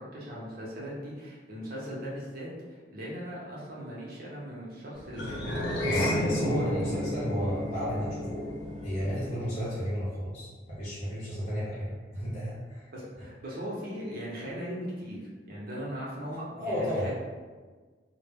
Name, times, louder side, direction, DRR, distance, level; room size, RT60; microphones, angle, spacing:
voice 1, 0.0-6.4 12.9-17.1, equal, 55° right, -5 dB, 0.7 m, -39 dB
sound 1, 5.1-9.7, left 1 dB, 80° left, 0.5 m, -32 dB
voice 2, 5.8-8.5 8.8-12.9 16.6-17.1, equal, 35° left, -8 dB, 0.7 m, -33 dB
2.1 x 2.0 x 3.4 m, 1.4 s
head